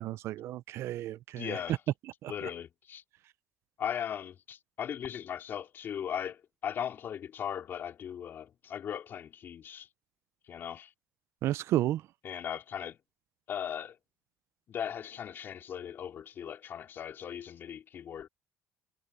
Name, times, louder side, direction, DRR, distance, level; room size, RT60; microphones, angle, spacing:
voice 1, 0.0-1.5 2.2-2.5 11.4-12.0, right 13 dB, 60° right, 0.5 m, -32 dB
voice 2, 1.4-1.8 2.3-3.0 3.8-9.9 10.5-10.9 12.2-13.0 13.5-14.0 14.7-18.3, left 9 dB, 45° left, 3.7 m, -38 dB
cardioid pair, 140°, 5 cm